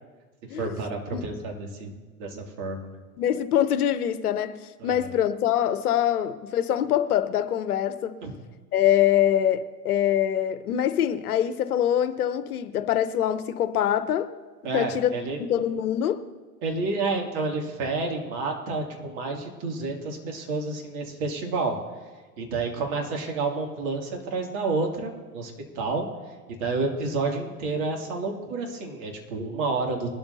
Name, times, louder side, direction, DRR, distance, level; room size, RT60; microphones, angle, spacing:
voice 1, 0.6-1.9 2.2-3.0 4.8-5.1 8.2-8.3 14.6-15.4 16.6-21.8 22.4-26.1 26.6-30.1, right 3 dB, 50° right, 2.6 m, -29 dB
voice 2, 3.2-4.5 4.8-8.2 8.7-14.3 14.7-15.1 15.4-16.2, left 10 dB, 70° left, 0.9 m, -24 dB
21.0 x 12.5 x 2.7 m
figure-of-eight pair, 90°, 46 cm